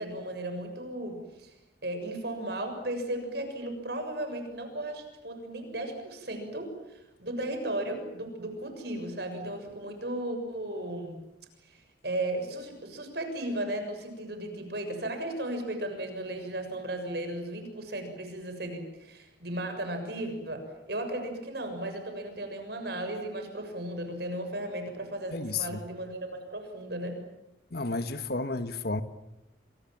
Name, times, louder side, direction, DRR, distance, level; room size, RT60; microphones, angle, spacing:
voice 1, 0.0-1.5 1.8-11.2 11.7-27.2, right 1 dB, 60° right, 6.9 m, -35 dB
voice 2, 25.3-25.8 27.7-29.0, left 3 dB, 55° left, 1.4 m, -32 dB
28.5 x 27.0 x 7.4 m
head